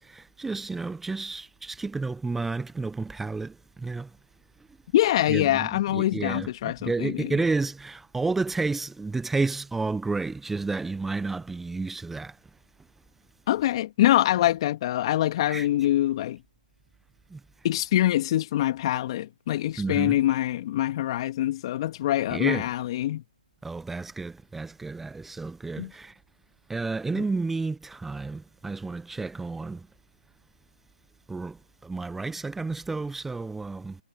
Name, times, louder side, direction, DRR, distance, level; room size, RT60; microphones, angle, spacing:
voice 1, 0.0-3.5 3.8-4.1 5.3-12.3 15.5-15.6 17.3-17.4 19.8-20.2 22.3-22.6 23.6-26.1 26.7-29.8 31.3-31.6 31.8-34.0, right 3 dB, 5° right, 0.6 m, -31 dB
voice 2, 4.9-7.4 13.5-16.4 17.6-23.2 25.8-25.9 27.1-27.3, left 13 dB, 40° left, 2.4 m, -24 dB
figure-of-eight pair, 140°, 5 cm